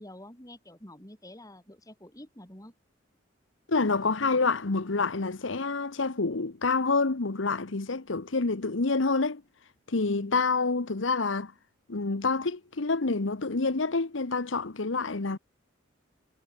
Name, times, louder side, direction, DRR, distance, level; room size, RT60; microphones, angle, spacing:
voice 1, 0.0-2.7 10.1-10.4, left 1 dB, 20° left, 6.1 m, -48 dB
voice 2, 3.7-9.4 9.9-11.5 11.9-15.4, left 3 dB, 75° left, 1.1 m, -27 dB
head